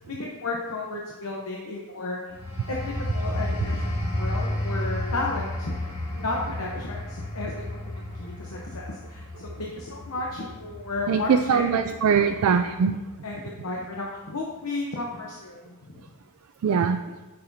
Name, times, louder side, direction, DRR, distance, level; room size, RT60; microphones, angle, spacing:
voice 1, 0.1-2.2 2.7-3.8 4.1-5.7 6.1-7.8 8.2-11.7 13.2-16.0, left 2 dB, 80° left, -2 dB, 0.9 m, -33 dB
sound 1, 2.3-12.7 13.1-13.4, left 1 dB, 30° left, 2.1 m, -32 dB
voice 2, 11.1-13.0 16.6-17.0, right 6 dB, 80° right, 8 dB, 0.3 m, -22 dB
9.6 x 6.6 x 2.7 m, 1.2 s
head